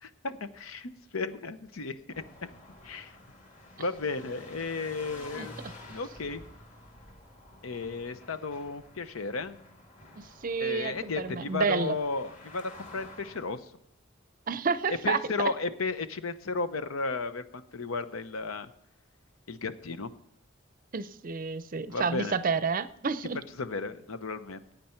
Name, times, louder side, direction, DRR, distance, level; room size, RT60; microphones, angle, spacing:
voice 1, 0.0-2.5 2.8-3.1 3.8-5.6 5.9-6.4 7.6-9.6 10.6-13.7 15.0-18.7 19.5-20.1 21.9-22.3 23.6-24.7, left 4 dB, 85° left, 12 dB, 0.8 m, -34 dB
sound 1, 2.1-13.5, left 2 dB, 35° left, 2.3 m, -50 dB
voice 2, 10.2-12.0 14.5-15.2 20.9-23.4, right 5 dB, 40° right, 14 dB, 0.5 m, -30 dB
15.0 x 9.1 x 4.5 m, 0.78 s
head